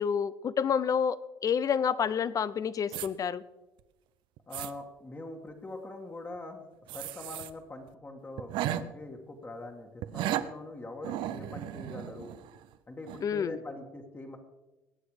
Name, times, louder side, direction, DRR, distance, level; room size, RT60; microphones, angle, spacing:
voice 1, 0.0-3.4 13.2-13.6, left 7 dB, 45° left, 17 dB, 0.7 m, -29 dB
sound 1, 2.9-3.1 3.8-3.9 4.4-4.7 6.9-7.5 7.9-8.0 8.4-8.8 10.0-10.5 11.0-12.7 13.1-13.2, right 13 dB, 75° right, 0.7 m, -35 dB
voice 2, 4.5-6.6 6.9-12.3 12.9-14.4, left 2 dB, 25° left, 2 dB, 1.8 m, -43 dB
19.5 x 7.9 x 5.0 m, 1.0 s
supercardioid pair, 85°, 8 cm